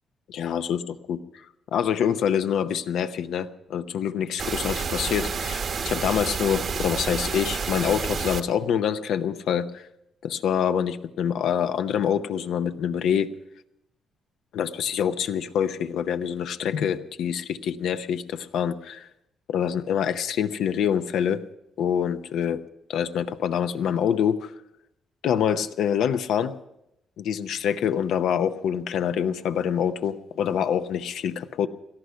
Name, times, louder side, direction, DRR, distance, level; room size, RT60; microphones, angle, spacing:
voice 1, 0.3-1.5 1.7-9.9 10.2-13.3 14.5-19.1 19.5-21.4 21.8-22.6 22.9-24.5 25.2-26.5 27.2-31.7, left 8 dB, 75° left, 10 dB, 0.7 m, -26 dB
sound 1, 4.4-8.4, right 5 dB, 55° right, 1.1 m, -29 dB
18.0 x 13.0 x 5.6 m, 0.84 s
cardioid pair, 90°, 0 cm